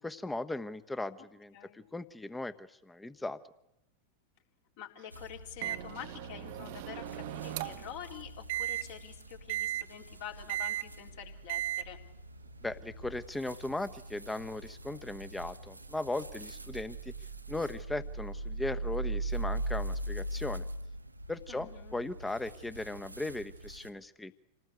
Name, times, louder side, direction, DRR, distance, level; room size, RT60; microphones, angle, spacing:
voice 1, 0.0-3.4 12.6-17.1 17.5-20.6 21.3-24.5, left 2 dB, 5° left, 13 dB, 1.2 m, -38 dB
voice 2, 4.8-12.0 21.5-22.0, left 9 dB, 50° left, 2 dB, 4.0 m, -47 dB
sound 1, 5.1-23.9, right 2 dB, 85° right, 1.2 m, -41 dB
Microwave oven, 5.6-7.9 8.5-8.8 9.5-9.8 10.5-10.9 11.5-11.8, right 13 dB, 50° right, 1.1 m, -36 dB
27.5 x 18.5 x 8.2 m, 0.87 s
figure-of-eight pair, 90°, 0 cm